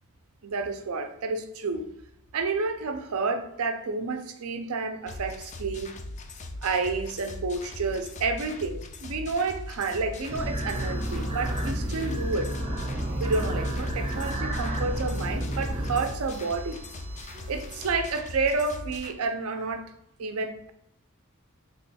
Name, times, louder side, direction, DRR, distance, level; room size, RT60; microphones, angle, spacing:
voice 1, 0.4-2.0 2.3-6.0 6.6-12.5 13.2-16.8 17.5-19.9 20.2-20.7, right 4 dB, 80° right, 7 dB, 0.5 m, -30 dB
sound 1, 5.1-19.1, left 2 dB, 35° left, 0.4 m, -40 dB
sound 2, 10.3-17.9, right 1 dB, 25° right, 0.6 m, -31 dB
3.5 x 2.3 x 4.0 m, 0.74 s
head